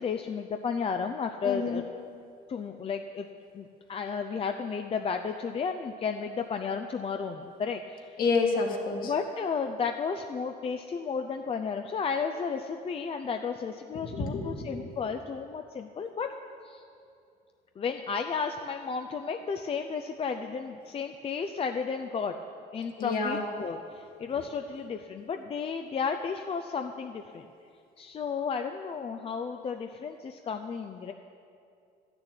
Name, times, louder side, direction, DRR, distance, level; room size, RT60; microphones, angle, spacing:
voice 1, 0.0-1.8 2.5-3.3 3.5-8.2 9.0-16.3 16.6-16.8 17.8-22.4 22.7-27.5 28.0-31.1, left 5 dB, 35° left, 6 dB, 0.5 m, -33 dB
voice 2, 1.4-1.8 8.2-9.1 14.1-14.8 23.0-23.4, left 4 dB, 60° left, 1 dB, 1.9 m, -29 dB
12.0 x 6.8 x 9.1 m, 2.5 s
cardioid pair, 110°, 17 cm